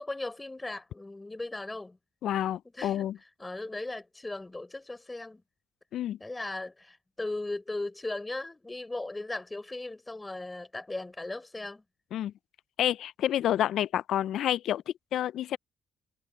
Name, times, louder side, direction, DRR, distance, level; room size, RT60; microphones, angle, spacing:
voice 1, 0.0-2.0 2.7-3.1 3.4-5.4 6.2-11.8, left 2 dB, 15° left, 4.2 m, -37 dB
voice 2, 2.2-3.2 5.9-6.2 12.1-12.3 12.8-15.6, left 11 dB, 65° left, 0.5 m, -29 dB
supercardioid pair, 60°, 0 cm